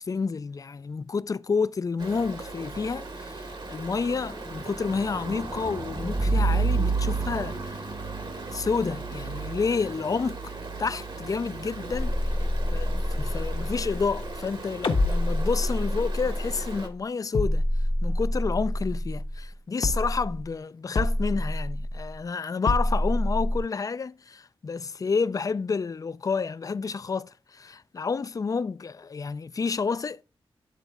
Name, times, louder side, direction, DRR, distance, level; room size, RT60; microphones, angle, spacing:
voice 1, 0.0-7.9 8.3-10.4 10.8-12.4 12.7-17.7 18.0-30.2, left 5 dB, 40° left, 0.3 m, -30 dB
Stream, 2.0-16.9, right 3 dB, 55° right, 1.3 m, -33 dB
sound 1, 11.9-14.5 14.8-16.9 17.3-19.5 19.8-20.5 20.9-22.2 22.7-23.6, left 1 dB, 65° left, 1.1 m, -27 dB
9.0 x 3.9 x 3.5 m
cardioid pair, 65°, 10 cm